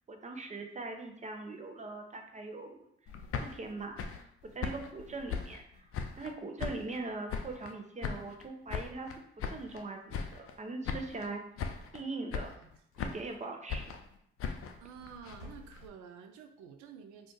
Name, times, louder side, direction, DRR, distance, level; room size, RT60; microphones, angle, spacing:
voice 1, 0.1-2.9 3.4-4.0 4.5-5.9 6.2-9.1 9.5-11.4 11.9-12.5 13.0-14.0, right 3 dB, 25° right, 3 dB, 0.6 m, -41 dB
sound 1, 3.1-6.3 6.6-7.7 8.0-9.8 10.1-10.6 10.8-11.3 11.6-12.0 12.3-13.4 13.7-15.9, left 6 dB, 45° left, 0.5 m, -39 dB
sound 2, 11.2-12.3 12.8-13.5 14.5-15.0 15.3-16.2, left 1 dB, 85° left, 0.9 m, -56 dB
voice 2, 14.8-17.3, right 7 dB, 75° right, 6 dB, 0.5 m, -50 dB
2.4 x 2.3 x 3.7 m, 0.72 s
hypercardioid pair, 40°, 31 cm